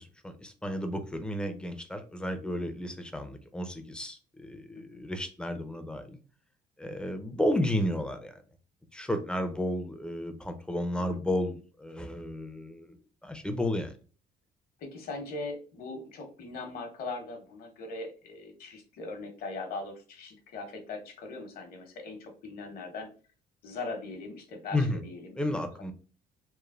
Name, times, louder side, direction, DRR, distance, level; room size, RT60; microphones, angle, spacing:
voice 1, 0.0-6.2 6.8-8.4 8.9-13.0 13.2-13.9 24.7-25.0 25.4-25.9, left 1 dB, 5° left, 8 dB, 0.4 m, -32 dB
voice 2, 14.8-23.1 23.6-25.5, left 3 dB, 60° left, 4 dB, 0.9 m, -40 dB
3.1 x 2.0 x 2.4 m, 0.37 s
cardioid pair, 110°, 17 cm